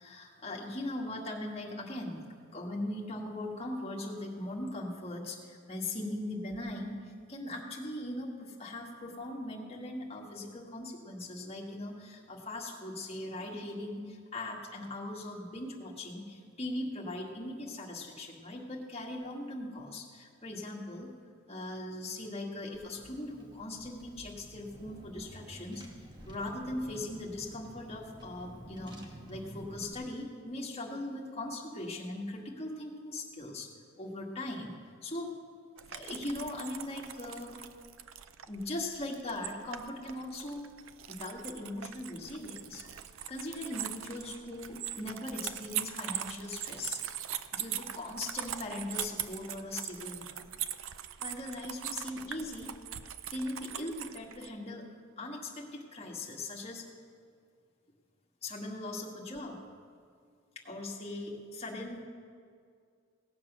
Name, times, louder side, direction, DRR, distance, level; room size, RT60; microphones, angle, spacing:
voice 1, 0.0-2.2 2.5-21.1 21.5-25.8 26.3-33.7 34.0-34.8 35.0-35.3 35.9-37.6 38.5-40.6 41.1-42.8 43.3-47.0 47.5-50.5 51.2-52.7 53.3-54.9 55.2-56.8 58.4-59.6 60.6-62.0, left 1 dB, 30° left, -2 dB, 1.8 m, -40 dB
Car / Engine, 22.7-29.9, equal, 20° right, 1.2 m, -50 dB
sound 1, 35.8-54.5, right 10 dB, 80° right, 0.5 m, -41 dB
17.5 x 7.4 x 6.1 m, 2.2 s
head